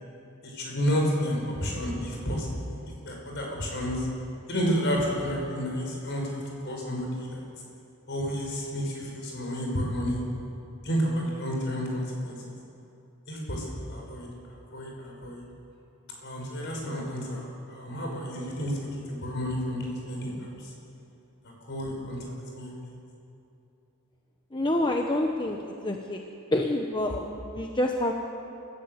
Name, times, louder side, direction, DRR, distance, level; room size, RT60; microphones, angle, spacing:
voice 1, 0.4-2.8 3.0-4.1 4.5-7.4 8.1-10.2 10.8-12.4 13.3-15.4 16.2-20.7 21.4-22.2 22.5-22.9, equal, 50° left, -1 dB, 5.9 m, -31 dB
voice 2, 24.5-26.2 26.5-28.1, left 1 dB, 20° left, 2 dB, 1.0 m, -27 dB
27.5 x 15.0 x 8.1 m, 2.7 s
head